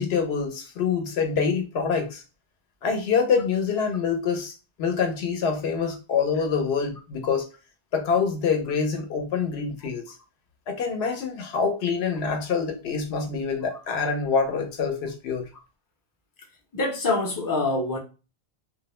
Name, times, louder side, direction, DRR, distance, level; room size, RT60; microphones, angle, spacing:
voice 1, 0.0-2.2 2.8-4.5 4.8-7.5 7.9-10.1 10.7-15.5, left 5 dB, 75° left, 0.9 m, -26 dB
voice 2, 16.7-18.0, left 2 dB, 25° left, 0.5 m, -25 dB
2.3 x 2.0 x 2.9 m
omnidirectional pair, 1.1 m